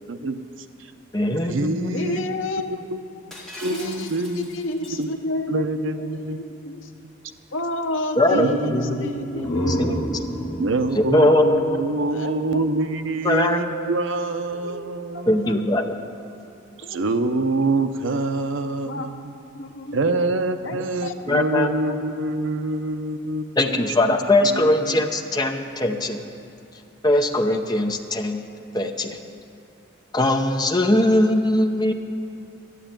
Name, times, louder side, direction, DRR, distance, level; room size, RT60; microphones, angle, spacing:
voice 1, 0.1-0.5 0.8-0.9 1.5-2.2 2.7-3.0 3.6-4.5 5.0-5.1 5.5-6.4 7.0-7.1 8.3-10.1 10.6-15.6 16.8-19.2 19.9-24.2 24.4-25.1, right 2 dB, 70° right, 8 dB, 0.7 m, -26 dB
voice 2, 1.1-1.9 8.2-10.0 10.9-11.9 13.2-13.6 15.3-16.0 21.3-21.7 23.6-26.3 27.0-28.5 28.7-29.2 30.1-31.9, left 1 dB, 20° left, 4 dB, 0.7 m, -21 dB
voice 3, 1.9-2.6 3.6-4.1 4.4-6.9 7.5-9.6 12.1-12.4 14.5-14.7 15.1-15.5 16.8-17.3 18.8-19.1 19.5-20.2 20.6-20.7 21.0-21.7 24.6-24.7, left 1 dB, 70° left, 6 dB, 0.9 m, -31 dB
Shatter, 3.3-5.0, left 1 dB, ahead, 2.0 m, -41 dB
sound 1, 9.1-12.8, equal, 55° left, 2.1 m, -29 dB
12.5 x 8.0 x 8.9 m, 2.8 s
head